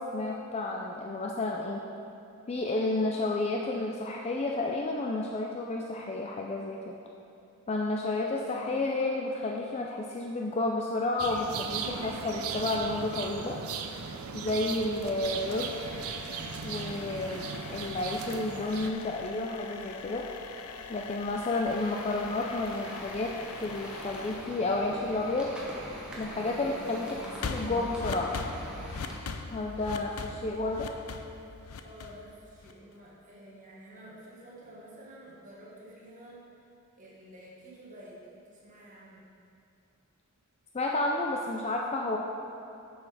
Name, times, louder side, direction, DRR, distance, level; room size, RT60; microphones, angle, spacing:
voice 1, 0.0-1.8 2.5-6.9 7.7-13.5 14.3-15.7 16.6-20.3 20.9-23.3 23.6-25.5 26.2-28.3 29.5-30.9 40.7-42.2, left 2 dB, 30° left, 0 dB, 0.4 m, -31 dB
sound 1, 11.2-18.9, right 5 dB, 80° right, 0.5 m, -37 dB
sound 2, 15.0-32.9, left 4 dB, 80° left, 0.5 m, -42 dB
sound 3, 21.7-29.2, equal, 5° right, 1.1 m, -43 dB
voice 2, 31.8-36.7 37.0-39.2, right 1 dB, 35° right, -5 dB, 1.5 m, -50 dB
7.3 x 6.4 x 4.9 m, 2.8 s
head